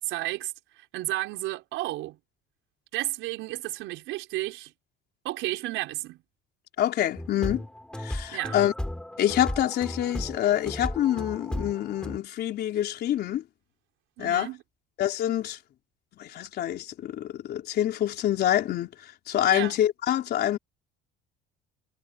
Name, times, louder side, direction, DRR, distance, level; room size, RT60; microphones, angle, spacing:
voice 1, 0.0-2.2 2.9-4.7 5.2-6.2 8.3-8.6 14.2-14.6 19.5-19.7, right 17 dB, 70° right, 4.7 m, -32 dB
voice 2, 6.8-7.7 8.0-8.7 9.2-13.4 14.2-14.5 15.0-15.6 16.2-20.6, left 12 dB, 50° left, 4.0 m, -26 dB
sound 1, 7.2-12.2, left 1 dB, 5° left, 4.4 m, -35 dB
cardioid pair, 140°, 21 cm